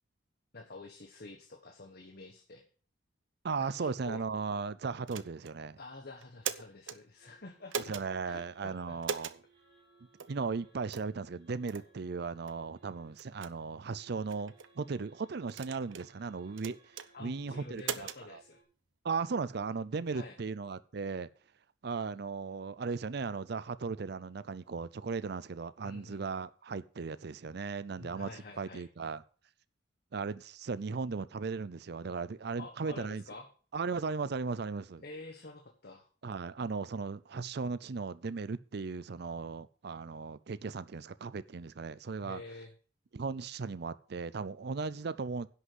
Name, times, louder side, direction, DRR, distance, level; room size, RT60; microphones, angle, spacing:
voice 1, 0.5-2.6 3.6-4.2 5.8-8.0 8.2-9.0 17.1-18.6 20.1-20.3 25.8-26.2 28.0-28.9 32.6-33.5 35.0-36.1 42.2-42.7, left 2 dB, 55° left, 1.4 m, -48 dB
voice 2, 3.4-5.8 7.7-9.3 10.3-18.4 19.0-21.3 21.8-29.2 30.1-33.2 33.7-35.0 36.2-42.4 43.1-45.5, right 4 dB, 55° right, 0.5 m, -37 dB
sound 1, 5.1-5.6 6.2-7.0 7.7-8.1 9.0-9.4 10.2-10.3 10.9-11.1 11.7-11.9 12.5-12.6 13.2-13.5 14.3-14.7 15.5-16.1 16.6-17.1 17.8-18.2, right 7 dB, 85° right, 0.8 m, -39 dB
sound 2, 7.2-18.6, right 3 dB, 30° right, 4.2 m, -66 dB
11.0 x 6.2 x 7.7 m
head